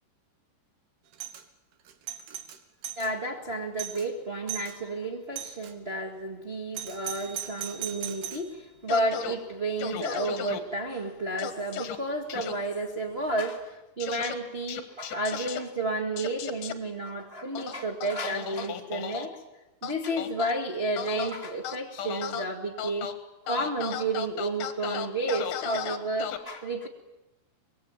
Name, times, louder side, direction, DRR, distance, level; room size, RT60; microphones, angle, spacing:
Doorbell, 1.1-1.4 1.9-3.1 3.5-3.6 3.8-4.1 4.5-4.8 5.4-5.7 6.7-8.5, right 10 dB, 75° right, 3.4 m, -38 dB
voice 1, 3.0-19.4 19.8-23.1 23.4-26.9, right 2 dB, 55° right, 1 dB, 0.6 m, -31 dB
sound 1, 8.9-9.4 9.8-10.6 11.4-12.0 12.3-12.5 14.0-14.3 14.7-15.6 16.2-16.7 17.5-19.3 19.8-20.5 21.0-21.3 21.6-22.4 22.8-23.1 23.5-26.4, left 9 dB, 60° left, 2.7 m, -34 dB
24.5 x 21.0 x 8.8 m, 1.0 s
omnidirectional pair, 4.8 m